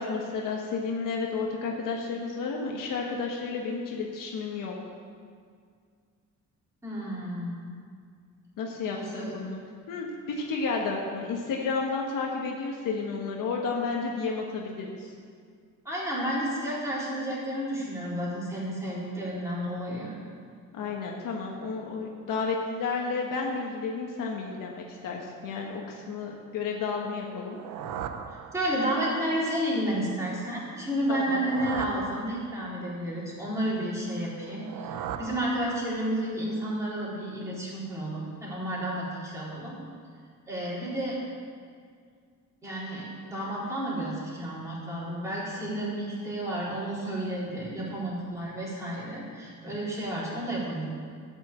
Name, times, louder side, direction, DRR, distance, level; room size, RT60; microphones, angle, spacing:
voice 1, 0.0-4.7 8.6-9.6 9.9-15.1 20.7-27.6 31.1-31.4, left 4 dB, 85° left, -1 dB, 1.4 m, -32 dB
voice 2, 6.8-7.7 8.9-9.3 15.9-20.1 28.3-39.7 40.5-41.2 42.6-50.9, right 1 dB, 10° right, -7 dB, 3.7 m, -31 dB
sound 1, 27.3-29.1 31.0-32.9 34.3-36.2, right 8 dB, 85° right, 0.8 m, -39 dB
13.0 x 6.2 x 8.1 m, 2.1 s
cardioid pair, 165°, 32 cm